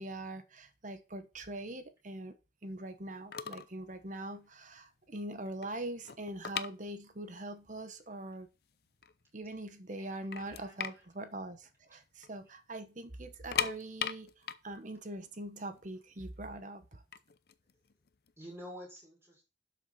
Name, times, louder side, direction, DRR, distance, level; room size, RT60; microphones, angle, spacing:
voice 1, 0.0-2.3 2.6-8.5 9.3-17.0, right 1 dB, 45° right, 9 dB, 1.1 m, -43 dB
sound 1, 3.0-3.1 3.3-3.8 4.0-4.3 4.8-4.9 5.2-7.4 7.7-7.8 8.4-8.5 8.9-9.6 9.9-10.0 10.3-12.3 12.6-12.7 13.3-16.2 16.9-18.7, left 8 dB, 60° left, 0.6 m, -38 dB
voice 2, 10.4-11.0 18.4-19.4, equal, 15° right, -2 dB, 6.1 m, -49 dB
12.0 x 6.7 x 4.2 m, 0.30 s
head